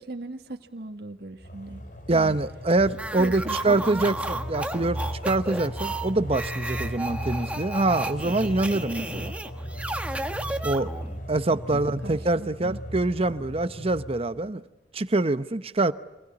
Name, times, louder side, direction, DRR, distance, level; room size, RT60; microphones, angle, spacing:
voice 1, 0.0-1.8 2.1-2.4 3.2-4.2 11.5-12.8, right 2 dB, 60° right, 5 dB, 1.7 m, -38 dB
sound 1, 1.4-14.5, equal, 50° left, 6.4 m, -37 dB
voice 2, 2.1-9.3 10.6-10.9 11.3-14.6 14.9-15.9, right 2 dB, 35° right, 13 dB, 0.9 m, -25 dB
sound 2, 2.9-11.2, right 2 dB, 5° right, 1.4 m, -33 dB
27.0 x 21.0 x 9.8 m, 1.0 s
head